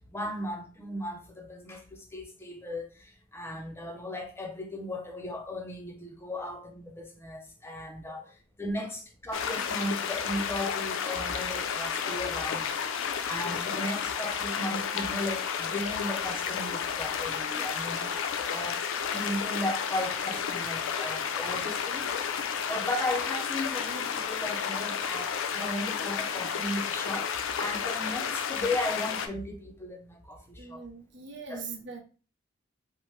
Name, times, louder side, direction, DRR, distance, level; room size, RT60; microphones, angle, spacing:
voice 1, 0.1-8.3 8.6-12.7 13.3-22.4 22.7-27.3 27.6-30.8 31.5-31.6, left 1 dB, 15° left, 0.5 m, -36 dB
sound 1, 9.3-29.3, left 7 dB, 80° left, 0.4 m, -32 dB
voice 2, 30.6-32.0, right 5 dB, 65° right, 0.6 m, -43 dB
3.1 x 2.0 x 3.1 m
head